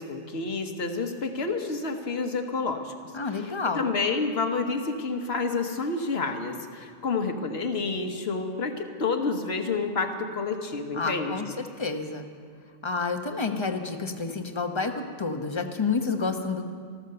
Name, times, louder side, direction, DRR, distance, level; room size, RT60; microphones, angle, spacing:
voice 1, 0.0-3.1 3.4-11.4, left 4 dB, 60° left, 5 dB, 1.4 m, -29 dB
voice 2, 3.1-3.9 10.9-11.5 11.8-12.3 12.8-16.7, left 4 dB, 25° left, 5 dB, 1.0 m, -29 dB
14.0 x 14.0 x 6.8 m, 2.2 s
omnidirectional pair, 1.2 m